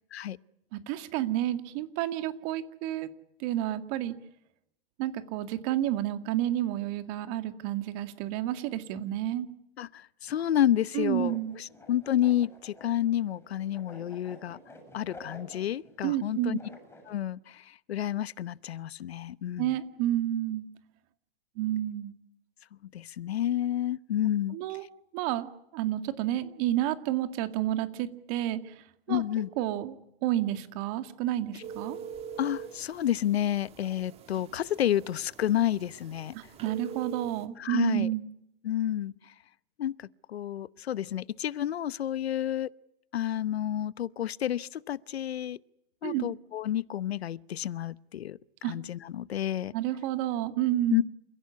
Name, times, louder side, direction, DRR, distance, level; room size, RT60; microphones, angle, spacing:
voice 1, 0.7-3.1 3.4-4.2 5.0-9.5 10.9-11.6 16.0-16.6 19.6-20.7 21.6-22.1 24.5-24.8 25.1-28.7 29.1-29.2 29.6-29.9 30.2-32.0 36.3-38.3 46.0-46.3 48.6-48.7 49.7-51.0, right 13 dB, 40° right, 2.1 m, -30 dB
voice 2, 9.8-14.6 14.9-16.6 17.1-19.8 22.9-24.6 29.1-29.5 32.4-36.3 37.6-38.1 38.6-39.3 39.8-42.7 43.1-45.6 46.0-49.7 50.9-51.0, left 11 dB, 80° left, 0.9 m, -30 dB
sound 1, 10.2-17.1, left 1 dB, 5° left, 7.4 m, -51 dB
sound 2, 31.6-37.4, right 7 dB, 20° right, 1.9 m, -44 dB
29.0 x 16.5 x 9.7 m
hypercardioid pair, 140°, 31 cm